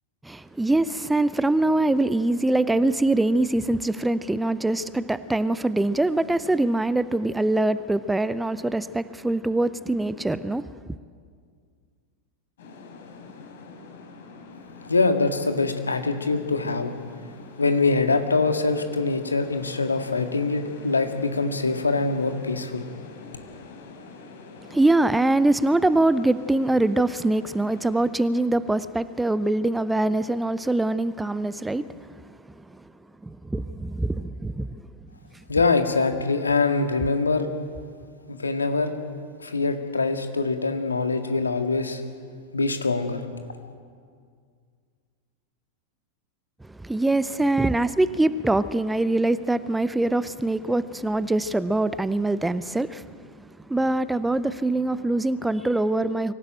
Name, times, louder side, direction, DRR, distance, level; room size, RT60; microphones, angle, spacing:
voice 1, 0.2-10.7 24.7-32.6 33.2-34.8 46.7-53.1 53.4-56.3, right 2 dB, 5° right, 0.6 m, -23 dB
sound 1, 12.6-28.1, left 4 dB, 60° left, 4.1 m, -45 dB
voice 2, 14.8-16.9 17.6-22.8 35.5-37.5 38.3-38.9 39.4-42.0 42.5-43.2, left 3 dB, 75° left, 1.8 m, -24 dB
24.5 x 16.5 x 9.0 m
figure-of-eight pair, 90°, 0 cm